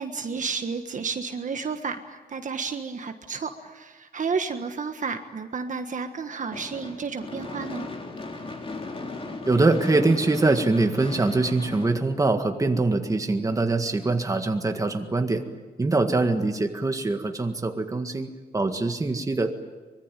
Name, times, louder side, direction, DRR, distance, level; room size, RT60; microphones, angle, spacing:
voice 1, 0.0-7.9, right 5 dB, 50° right, 6 dB, 1.5 m, -31 dB
Gunshot gunfire / Fireworks, 6.5-12.8, left 2 dB, 35° left, 3.6 m, -37 dB
voice 2, 9.5-15.4 15.8-19.5, right 3 dB, 20° right, 5 dB, 1.8 m, -23 dB
25.0 x 22.5 x 9.1 m, 1.3 s
wide cardioid pair, 145°, 17 cm